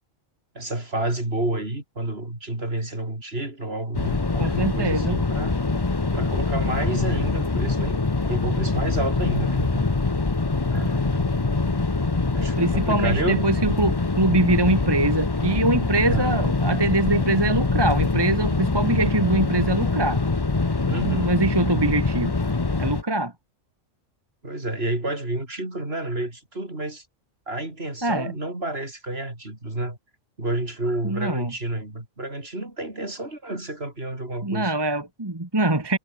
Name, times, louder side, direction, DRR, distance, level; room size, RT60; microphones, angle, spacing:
voice 1, 0.6-5.5 6.1-8.0 8.3-9.9 10.7-11.3 12.3-13.8 16.0-16.4 20.9-21.4 24.4-27.1 27.5-30.0 30.4-34.7, right 2 dB, 50° right, 5.7 m, -30 dB
sound 1, 3.9-23.0, left 3 dB, 20° left, 0.9 m, -24 dB
voice 2, 4.4-5.2 12.6-20.2 21.0-22.3 22.8-23.3 28.0-28.3 31.0-31.5 34.4-36.0, right 2 dB, 20° right, 1.8 m, -23 dB
omnidirectional pair, 1.4 m